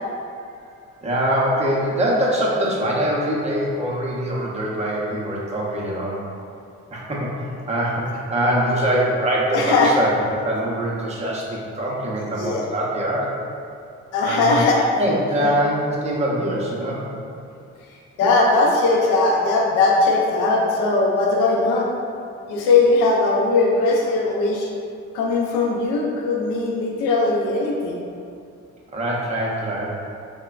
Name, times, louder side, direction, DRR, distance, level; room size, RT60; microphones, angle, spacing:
voice 1, 1.0-6.2 6.9-13.4 14.2-14.6 15.0-17.1 28.9-29.9, right 1 dB, 20° right, -4 dB, 0.5 m, -23 dB
voice 2, 9.4-10.0 12.2-12.7 14.1-15.5 18.2-21.9 22.5-24.7 25.1-28.0, left 3 dB, 90° left, -1 dB, 0.5 m, -19 dB
3.0 x 2.0 x 2.3 m, 2.4 s
cardioid pair, 90°, 30 cm